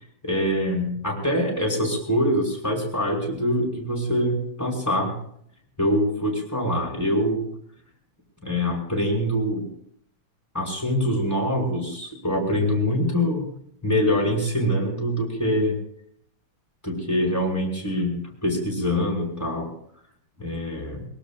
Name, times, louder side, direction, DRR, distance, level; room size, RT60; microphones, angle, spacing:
voice 1, 0.2-5.2 5.8-7.4 8.4-9.7 10.5-13.4 13.8-15.8 16.8-19.7 20.4-21.0, equal, 5° left, -2 dB, 5.0 m, -24 dB
23.0 x 22.5 x 2.5 m, 0.67 s
omnidirectional pair, 3.5 m